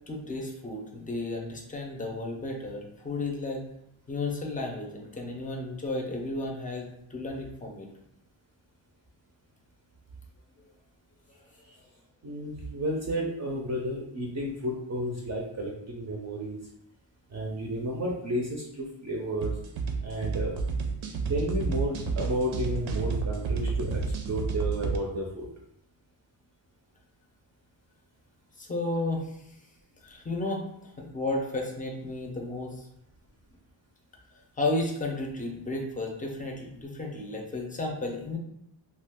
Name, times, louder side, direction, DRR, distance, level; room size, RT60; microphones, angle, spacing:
voice 1, 0.1-3.6 4.1-7.9 28.6-29.5 30.0-32.9 34.6-38.4, left 2 dB, 20° left, 1 dB, 0.5 m, -33 dB
voice 2, 12.2-16.6 17.3-19.5 20.0-20.6 21.3-25.5, right 1 dB, 40° right, -1 dB, 0.4 m, -32 dB
sound 1, 19.4-25.0, right 4 dB, 80° right, 0.6 m, -30 dB
2.7 x 2.3 x 3.4 m, 0.76 s
wide cardioid pair, 140°, 45 cm